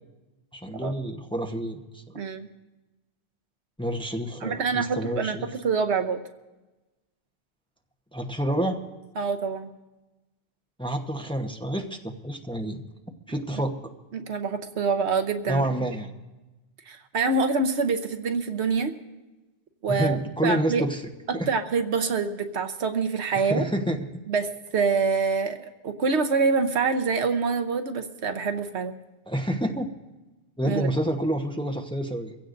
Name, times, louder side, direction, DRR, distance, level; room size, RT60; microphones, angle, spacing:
voice 1, 0.5-2.0 3.8-5.5 8.1-8.8 10.8-12.8 13.3-13.9 15.5-16.1 19.9-21.0 21.3-21.5 23.4-24.2 29.3-29.9 30.6-32.4, right 1 dB, 5° left, 2 dB, 0.9 m, -28 dB
voice 2, 2.1-2.5 4.4-6.2 9.2-9.7 14.1-15.7 16.9-18.9 19.8-20.2 20.4-20.8 21.3-23.6 24.3-29.0 30.6-30.9, right 4 dB, 80° right, 7 dB, 1.2 m, -26 dB
24.0 x 16.0 x 2.6 m, 1.1 s
omnidirectional pair, 1.1 m